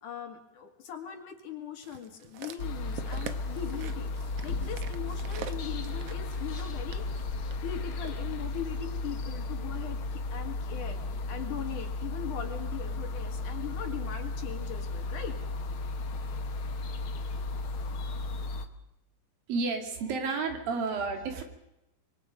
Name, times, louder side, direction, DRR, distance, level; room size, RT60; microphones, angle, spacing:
voice 1, 0.0-4.1 4.4-7.0 7.6-11.0 11.3-15.4 16.1-16.2, left 9 dB, 60° left, 5 dB, 3.2 m, -40 dB
sound 1, 1.8-8.2 8.9-9.0, right 8 dB, 85° right, 1.3 m, -46 dB
sound 2, 2.6-18.7, left 3 dB, 85° left, 1.1 m, -34 dB
voice 2, 19.5-21.4, right 4 dB, 70° right, 4 dB, 4.0 m, -31 dB
25.5 x 22.5 x 5.2 m, 0.89 s
omnidirectional pair, 4.3 m